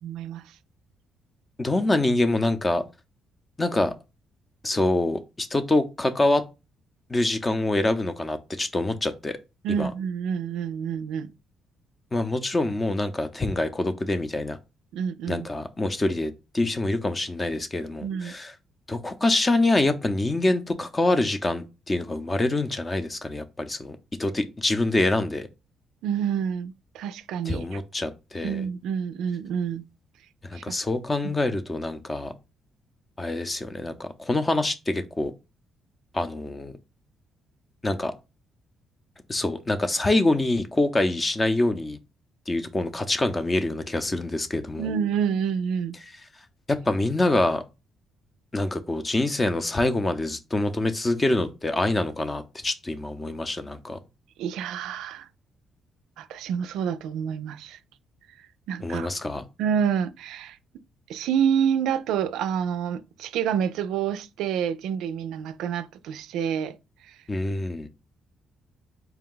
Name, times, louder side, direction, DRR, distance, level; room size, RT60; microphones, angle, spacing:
voice 1, 0.0-0.6 9.6-11.3 14.9-15.5 18.0-18.3 26.0-27.8 28.4-29.8 30.5-30.6 44.8-46.0 54.4-55.3 56.2-57.8 58.4-59.1 59.6-60.6 61.1-66.8 67.0-67.2, right 8 dB, 90° right, 0.3 m, -28 dB
voice 2, 1.6-2.8 3.6-3.9 4.6-6.4 7.1-9.4 9.8-9.9 12.1-14.6 15.3-18.5 18.9-25.5 27.5-28.6 30.4-32.3 33.2-35.3 36.1-36.7 37.8-38.1 39.3-42.0 42.5-44.9 46.7-47.6 48.5-54.0 58.8-59.4 67.3-67.9, left 2 dB, 25° left, 0.6 m, -25 dB
4.5 x 2.2 x 3.7 m
cardioid pair, 90°, 0 cm